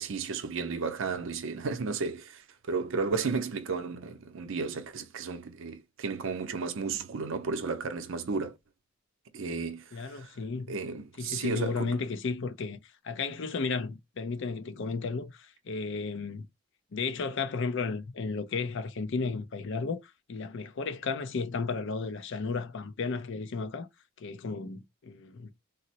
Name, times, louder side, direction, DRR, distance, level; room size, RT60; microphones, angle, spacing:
voice 1, 0.0-8.6 9.3-10.3 10.7-12.0, right 4 dB, 65° right, 0.5 m, -33 dB
voice 2, 9.9-10.7 11.2-12.8 13.0-16.5 16.9-23.9 24.2-25.5, left 4 dB, 65° left, 0.5 m, -33 dB
3.9 x 2.0 x 2.8 m
head